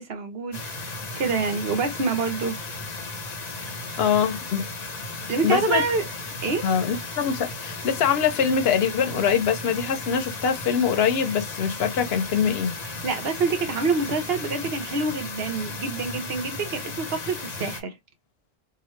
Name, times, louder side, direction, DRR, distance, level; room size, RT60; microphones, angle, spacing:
voice 1, 0.0-2.6 5.3-6.1 6.4-6.7 12.9-17.9, right 4 dB, 70° right, 1.1 m, -27 dB
sound 1, 0.5-17.8, left 3 dB, 45° left, 0.8 m, -35 dB
voice 2, 4.0-4.7 5.4-5.8 6.6-12.8, left 7 dB, 75° left, 0.9 m, -23 dB
3.0 x 2.3 x 3.1 m
omnidirectional pair, 1.1 m